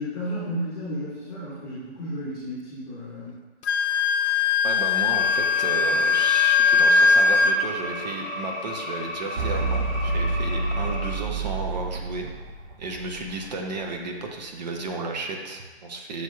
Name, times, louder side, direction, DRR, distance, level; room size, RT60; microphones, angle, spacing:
voice 1, 0.0-3.4, equal, ahead, -32 dB, 0.4 m, -33 dB
Wind instrument woodwind instrument, 3.6-7.6, left 5 dB, 75° left, 0.5 m, -20 dB
voice 2, 4.6-12.3 12.8-16.2, right 3 dB, 40° right, 2 dB, 0.7 m, -33 dB
sound 1, 5.1-11.1, left 1 dB, 20° left, 1.2 m, -34 dB
sound 2, 9.4-13.9, right 3 dB, 75° right, 0.6 m, -29 dB
7.8 x 2.8 x 2.3 m, 1.2 s
hypercardioid pair, 150°, 34 cm